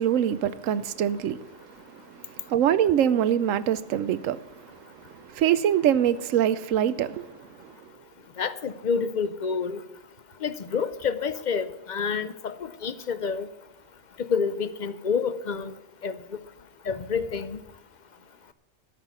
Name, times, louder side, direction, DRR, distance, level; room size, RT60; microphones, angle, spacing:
voice 1, 0.0-1.4 2.5-4.4 5.4-7.3, right 10 dB, 85° right, 1.0 m, -23 dB
voice 2, 8.4-9.8 10.4-13.5 14.2-15.7 16.0-16.4 16.9-17.6, left 6 dB, 50° left, 0.6 m, -28 dB
13.0 x 6.1 x 9.3 m
omnidirectional pair, 1.3 m